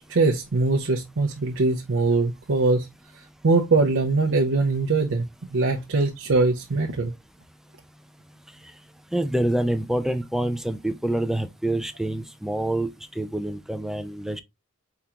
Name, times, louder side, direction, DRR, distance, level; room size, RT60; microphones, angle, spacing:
voice 1, 0.1-2.9 3.4-5.3 5.5-7.1, right 3 dB, 60° right, 0.6 m, -22 dB
voice 2, 9.1-12.9 13.2-14.4, right 1 dB, ahead, 0.5 m, -26 dB
4.7 x 3.6 x 2.9 m
head